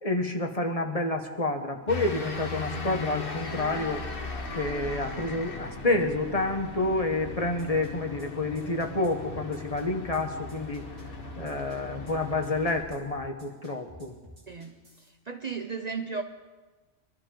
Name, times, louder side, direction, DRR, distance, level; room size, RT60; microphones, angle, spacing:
voice 1, 0.0-4.0 4.5-10.8 11.4-14.2, left 2 dB, 35° left, 4 dB, 1.1 m, -29 dB
sound 1, 1.9-12.8, left 3 dB, 50° left, 1.5 m, -38 dB
sound 2, 7.6-15.1, equal, 85° right, 3.5 m, -50 dB
voice 2, 14.5-16.2, right 5 dB, 40° right, 5 dB, 0.7 m, -35 dB
23.0 x 13.0 x 3.8 m, 1.3 s
omnidirectional pair, 1.2 m